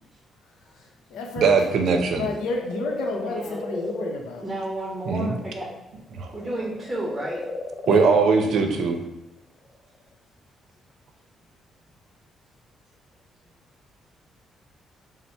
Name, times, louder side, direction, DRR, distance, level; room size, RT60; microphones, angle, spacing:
voice 1, 0.7-1.7 2.2-4.4 7.9-8.1, left 3 dB, 90° left, 1 dB, 0.7 m, -31 dB
voice 2, 1.4-2.3 5.1-5.3 6.1-6.3 7.9-9.0, right 5 dB, 70° right, 5 dB, 0.6 m, -20 dB
sound 1, 2.3-5.8 6.1-8.7 9.7-9.8, left 2 dB, 35° left, 0.5 m, -35 dB
voice 3, 3.2-3.6 4.4-5.7 6.3-7.4, right 1 dB, 10° right, -3 dB, 0.8 m, -31 dB
4.1 x 2.1 x 4.3 m, 0.88 s
cardioid pair, 90°, 0 cm